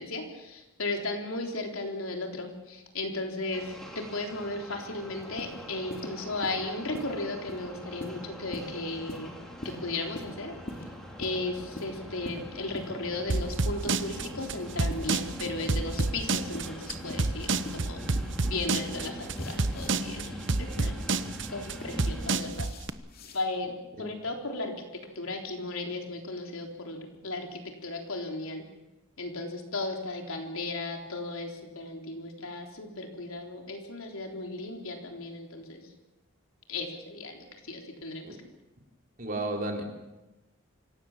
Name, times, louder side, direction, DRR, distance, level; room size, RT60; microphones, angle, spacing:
voice 1, 0.0-9.3 9.6-10.5 11.2-18.0 18.4-21.0 21.5-22.7 23.3-23.7 24.0-28.6 29.2-35.8 36.7-38.4, left 2 dB, 75° left, 3 dB, 3.7 m, -35 dB
Organic train sounds, 3.5-22.4, equal, ahead, 3.5 m, -43 dB
sound 1, 5.2-5.6 5.9-6.1 6.4-6.6 6.9-7.1 7.5-7.6 8.0-8.2 8.5-8.7 9.1-9.3 9.6-9.8 10.1-10.3 10.7-10.9 11.2-11.4 11.8-11.9 12.2-12.4 12.7-12.9 13.3-13.5 13.9-14.0 14.4-14.5 14.9-15.1 15.5-15.6 16.0-16.1 16.5-16.7 17.1-17.3 17.7-17.8 18.1-18.3 18.7-18.9 19.2-19.9 21.3-21.9 22.5-23.4, left 1 dB, 45° left, 2.8 m, -42 dB
sound 2, 13.3-22.9, right 3 dB, 55° right, 1.0 m, -28 dB
voice 2, 39.2-39.8, right 2 dB, 40° right, 2 dB, 3.7 m, -32 dB
25.0 x 17.0 x 7.3 m, 1.0 s
head